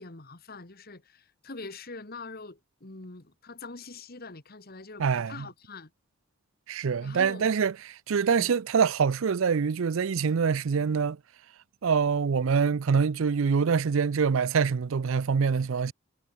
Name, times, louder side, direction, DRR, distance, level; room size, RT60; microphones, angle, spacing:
voice 1, 0.0-5.9 7.0-7.5 8.3-8.5, left 3 dB, 45° left, 1.7 m, -44 dB
voice 2, 5.0-5.3 6.7-11.2 11.8-15.9, right 6 dB, 65° right, 0.5 m, -25 dB
head